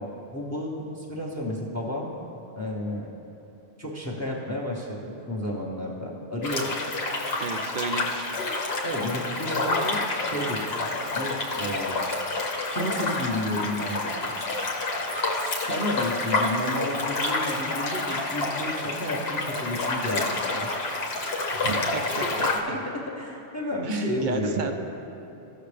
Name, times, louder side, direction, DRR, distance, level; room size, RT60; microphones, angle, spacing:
voice 1, 0.0-2.1 2.5-3.1 3.8-6.7 8.8-10.9 11.1-12.0 12.7-14.3 15.3-20.7 22.4-24.7, left 1 dB, 15° left, -2 dB, 0.9 m, -32 dB
sound 1, 6.4-22.6, left 2 dB, 60° left, 1.2 m, -28 dB
voice 2, 7.4-8.4 21.5-22.8 23.8-24.7, right 5 dB, 50° right, 6 dB, 0.7 m, -32 dB
15.0 x 6.5 x 3.3 m, 2.9 s
omnidirectional pair, 1.2 m